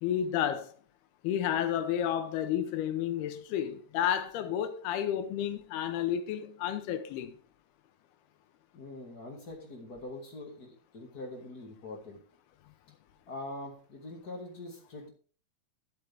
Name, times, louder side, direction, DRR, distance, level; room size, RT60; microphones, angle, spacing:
voice 1, 0.0-0.7 1.2-7.3, left 10 dB, 90° left, 3.0 m, -31 dB
voice 2, 8.7-12.2 13.3-15.1, left 2 dB, 35° left, 1.6 m, -43 dB
13.0 x 7.9 x 3.5 m
omnidirectional pair, 4.4 m